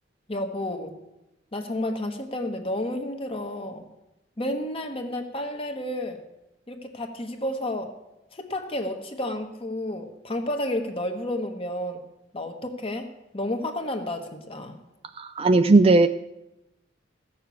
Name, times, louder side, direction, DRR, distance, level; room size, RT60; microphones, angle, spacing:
voice 1, 0.3-1.0 1.5-3.8 4.4-6.2 6.7-7.9 8.3-12.0 12.3-13.1 13.3-14.8, left 1 dB, 30° left, 5 dB, 1.2 m, -31 dB
voice 2, 15.2-16.1, right 3 dB, 30° right, 9 dB, 0.4 m, -17 dB
15.0 x 6.7 x 8.2 m, 0.92 s
head